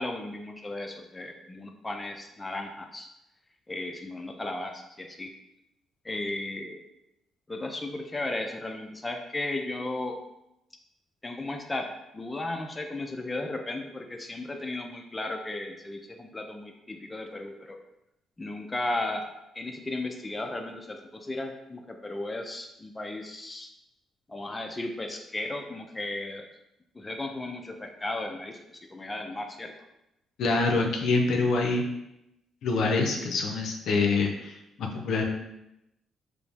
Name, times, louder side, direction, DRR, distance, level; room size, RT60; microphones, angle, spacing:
voice 1, 0.0-3.1 3.7-5.3 6.0-6.8 7.5-10.2 11.2-17.8 18.4-23.7 24.3-26.5 26.9-28.6 28.9-29.7, left 2 dB, 20° left, 3 dB, 0.4 m, -35 dB
voice 2, 30.4-31.8 32.6-35.2, left 3 dB, 75° left, 2 dB, 0.5 m, -25 dB
4.8 x 2.0 x 3.4 m, 0.87 s
cardioid pair, 90°, 0 cm